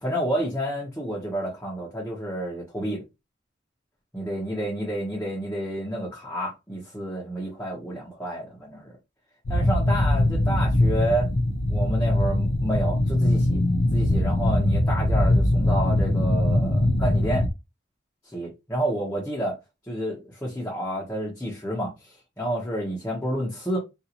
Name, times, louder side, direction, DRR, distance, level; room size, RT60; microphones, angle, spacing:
voice 1, 0.0-3.0 4.1-8.9 9.5-11.3 11.7-13.6 13.9-17.4 18.2-19.6 19.9-23.8, right 1 dB, 10° left, 1.0 m, -30 dB
sound 1, 9.5-17.5, left 1 dB, 75° left, 0.7 m, -22 dB
3.8 x 2.6 x 2.9 m
head